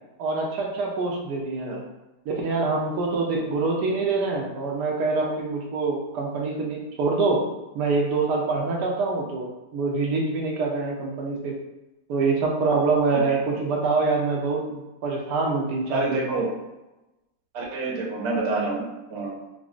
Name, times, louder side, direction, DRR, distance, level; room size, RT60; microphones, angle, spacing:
voice 1, 0.2-1.8 2.3-7.4 7.7-11.5 12.1-16.4, right 3 dB, 75° right, -1 dB, 1.2 m, -25 dB
voice 2, 15.9-16.5 17.5-19.4, right 2 dB, 50° right, -3 dB, 0.9 m, -28 dB
4.8 x 2.0 x 2.4 m, 1.0 s
omnidirectional pair, 1.8 m